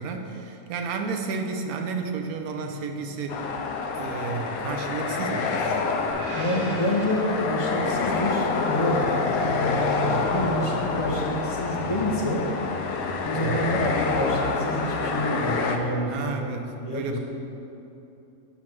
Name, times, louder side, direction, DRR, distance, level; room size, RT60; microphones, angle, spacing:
voice 1, 0.0-3.5 3.9-5.8 9.0-9.2 13.3-13.7 16.1-17.2, right 4 dB, 85° right, 4 dB, 1.1 m, -32 dB
sound 1, 3.3-15.8, left 4 dB, 85° left, 1.1 m, -27 dB
sound 2, 6.1-8.3, right 1 dB, 40° right, 1.0 m, -40 dB
voice 2, 6.3-12.4 13.2-16.5 16.8-17.2, left 1 dB, 30° left, -3 dB, 0.7 m, -28 dB
8.4 x 3.2 x 5.9 m, 2.9 s
omnidirectional pair, 1.5 m